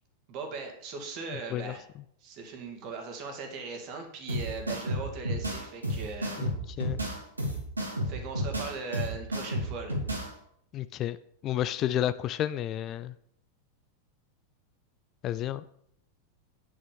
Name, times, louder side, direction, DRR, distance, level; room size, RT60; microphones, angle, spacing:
voice 1, 0.3-1.8 2.2-6.5 6.8-6.9 8.0-10.0, right 4 dB, 40° right, 4 dB, 2.5 m, -39 dB
sound 1, 4.3-10.3, equal, 80° right, 2.8 m, -32 dB
voice 2, 10.7-11.2 11.4-13.1 15.2-15.6, left 12 dB, 35° left, 15 dB, 0.4 m, -31 dB
9.4 x 8.7 x 5.3 m, 0.70 s
figure-of-eight pair, 90°, 0 cm